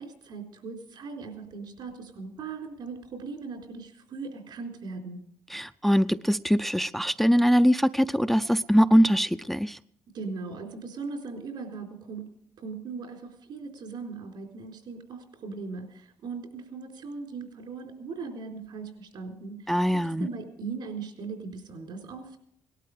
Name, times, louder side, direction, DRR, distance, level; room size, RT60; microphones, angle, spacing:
voice 1, 0.0-5.2 10.1-12.2 12.6-19.7 20.2-22.4, right 4 dB, 70° right, 2 dB, 4.0 m, -39 dB
voice 2, 5.5-9.8 19.7-20.3, equal, ahead, 11 dB, 0.5 m, -22 dB
18.5 x 12.5 x 4.9 m, 0.68 s
supercardioid pair, 60°, 8 cm